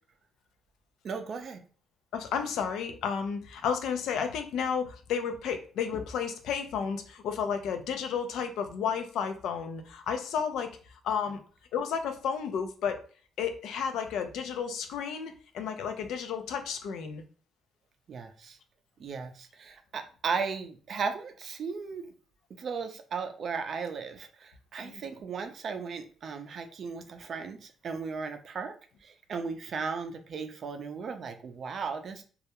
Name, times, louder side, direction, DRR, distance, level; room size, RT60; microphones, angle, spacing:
voice 1, 1.0-1.6 18.1-18.6 19.0-22.1 22.5-28.8 29.0-32.2, right 5 dB, 55° right, 7 dB, 0.4 m, -36 dB
voice 2, 2.1-11.4 11.7-13.0 13.4-17.2 24.8-25.0, left 7 dB, 80° left, 7 dB, 0.4 m, -32 dB
2.3 x 2.1 x 2.8 m, 0.40 s
cardioid pair, 90°, 0 cm